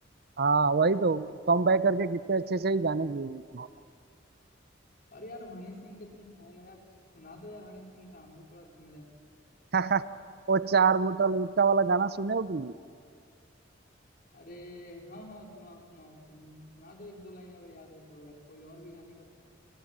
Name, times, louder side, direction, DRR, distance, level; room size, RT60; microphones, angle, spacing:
voice 1, 0.4-3.7 9.7-10.1 10.5-12.7, right 4 dB, 55° right, 15 dB, 0.7 m, -25 dB
voice 2, 5.1-6.8 7.1-9.1 14.3-19.3, left 1 dB, 50° left, 1 dB, 4.7 m, -48 dB
30.0 x 26.0 x 7.5 m, 2.3 s
head